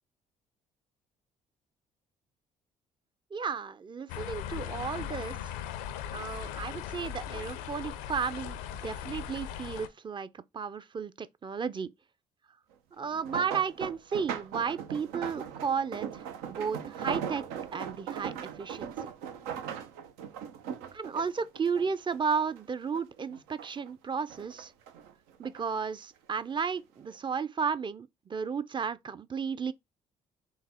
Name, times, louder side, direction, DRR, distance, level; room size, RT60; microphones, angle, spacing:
voice 1, 3.3-5.5 6.1-11.9 13.0-17.4 17.7-19.1 20.9-24.7 25.4-29.7, right 6 dB, 30° right, 0.5 m, -33 dB
sound 1, 4.1-9.9, left 10 dB, 90° left, 0.6 m, -38 dB
sound 2, 13.0-22.6 22.9-23.9 24.3-25.6 26.4-26.7 27.1-27.2, right 8 dB, 85° right, 0.7 m, -39 dB
3.9 x 2.9 x 4.2 m
supercardioid pair, 60°, 15 cm